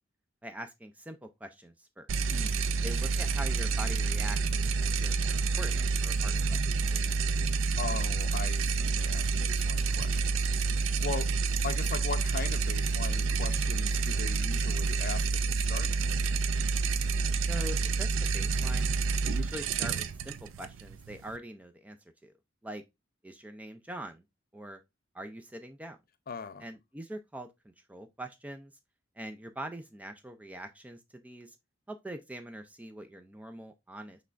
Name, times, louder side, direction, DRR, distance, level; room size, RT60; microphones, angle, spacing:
voice 1, 0.4-2.3 2.8-7.0 17.5-18.9 19.2-22.0 22.2-22.3 22.6-22.8 23.2-24.2 24.5-24.8 25.1-26.0 26.6-28.7 29.2-31.6 31.9-34.2, right 1 dB, 10° right, 0.3 m, -43 dB
sound 1, 2.1-21.4, right 4 dB, 80° right, 0.4 m, -29 dB
voice 2, 2.3-2.7 7.5-10.5 11.0-11.3 11.6-16.3 26.3-26.7, left 5 dB, 45° left, 0.5 m, -40 dB
5.9 x 3.3 x 2.4 m
head